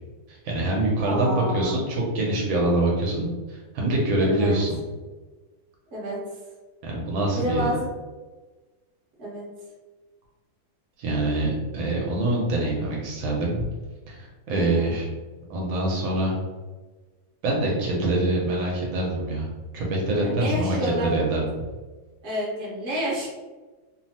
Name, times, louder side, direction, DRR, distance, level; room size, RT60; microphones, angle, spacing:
voice 1, 0.3-4.8 6.8-7.6 11.0-13.6 14.1-15.1 15.5-16.4 17.4-19.5 19.7-21.4, right 1 dB, 75° right, -2 dB, 1.4 m, -25 dB
voice 2, 1.0-1.7 4.2-4.6 5.9-6.2 7.4-7.9 9.2-9.5 14.5-14.9 20.2-21.1 22.2-23.3, equal, 45° right, -6 dB, 1.0 m, -29 dB
3.5 x 2.0 x 2.7 m, 1.3 s
omnidirectional pair, 2.2 m